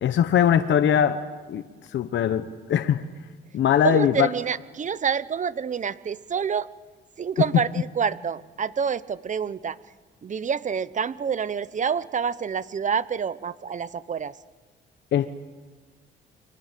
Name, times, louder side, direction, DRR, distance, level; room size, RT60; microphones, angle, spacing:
voice 1, 0.0-1.2 1.5-1.6 1.9-3.0 3.5-4.3 15.1-15.4, left 9 dB, 65° left, 9 dB, 1.1 m, -21 dB
voice 2, 3.8-6.7 7.2-9.8 10.2-14.4, right 7 dB, 40° right, 17 dB, 0.9 m, -27 dB
29.5 x 24.0 x 7.6 m, 1.4 s
cardioid pair, 90°, 20 cm